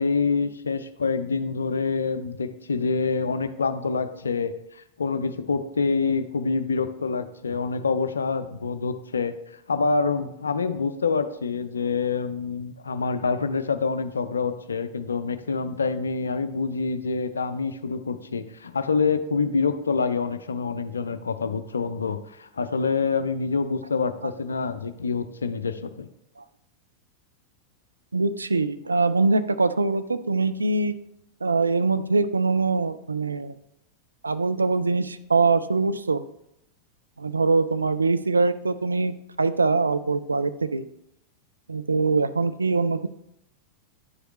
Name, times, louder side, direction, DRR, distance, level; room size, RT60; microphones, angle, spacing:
voice 1, 0.0-9.4 9.7-26.1, left 4 dB, 75° left, 12 dB, 0.4 m, -26 dB
voice 2, 28.1-30.9 31.4-33.5 34.2-36.2 37.2-40.9 41.7-43.1, right 3 dB, 80° right, 12 dB, 0.4 m, -23 dB
9.8 x 4.8 x 3.1 m, 0.79 s
figure-of-eight pair, 90°, 0 cm